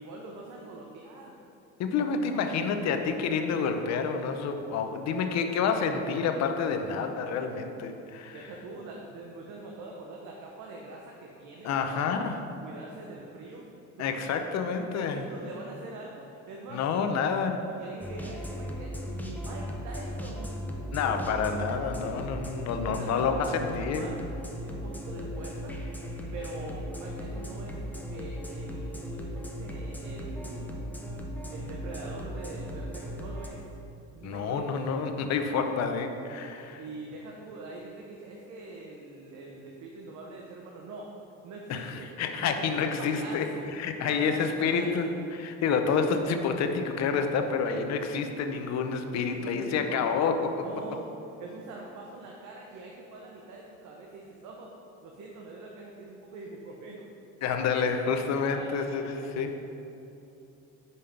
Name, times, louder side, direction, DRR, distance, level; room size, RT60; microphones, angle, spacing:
voice 1, 0.0-1.4 8.2-12.2 12.6-13.7 14.0-16.8 17.8-20.5 22.9-24.1 24.4-25.8 26.3-30.7 31.5-33.6 34.1-34.7 36.8-41.1 41.4-42.1 42.3-42.7 43.0-43.7 44.0-45.2 49.1-50.1 50.6-51.1 51.4-54.7 55.0-57.1 58.2-58.9, right 3 dB, 70° right, -1 dB, 0.9 m, -44 dB
voice 2, 1.8-8.4 11.6-12.4 14.0-15.2 16.7-17.7 20.9-24.1 34.2-36.8 41.7-43.5 43.7-45.1 45.3-50.6 57.4-59.5, left 5 dB, 60° left, 6 dB, 0.7 m, -28 dB
sound 1, 18.0-33.5, equal, 5° left, 0.7 m, -37 dB
5.5 x 5.0 x 5.7 m, 2.9 s
cardioid pair, 110°, 30 cm